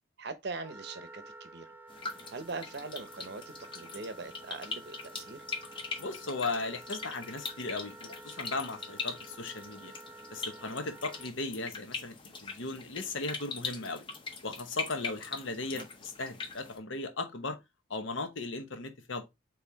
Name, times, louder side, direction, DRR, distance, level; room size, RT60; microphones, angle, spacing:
voice 1, 0.2-1.7 2.3-3.4 3.7-5.4 15.6-15.9, right 3 dB, 55° right, 0.7 m, -41 dB
Wind instrument woodwind instrument, 0.6-11.3, right 2 dB, 10° right, 0.4 m, -51 dB
sound 1, 1.9-16.8, left 4 dB, 25° left, 0.7 m, -42 dB
voice 2, 6.0-9.9 10.3-12.1 12.4-14.0 14.4-17.6 17.9-19.2, left 3 dB, 75° left, 0.9 m, -37 dB
4.5 x 3.5 x 3.3 m
head